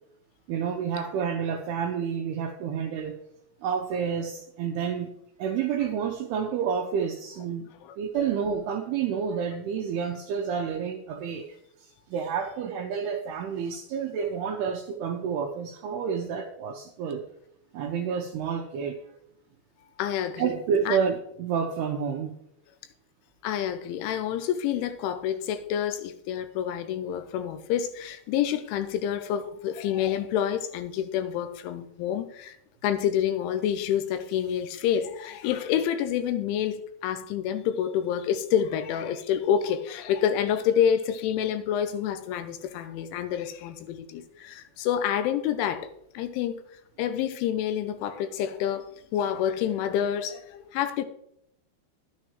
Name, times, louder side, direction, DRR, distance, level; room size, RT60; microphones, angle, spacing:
voice 1, 0.5-3.2 3.6-17.2 17.7-19.2 20.4-22.3, right 7 dB, 90° right, 2.3 m, -29 dB
voice 2, 20.0-20.5 20.9-21.0 23.4-32.6 32.8-46.6 47.0-48.9 49.1-51.1, left 9 dB, 90° left, 3.1 m, -28 dB
11.5 x 9.7 x 3.1 m
omnidirectional pair, 5.5 m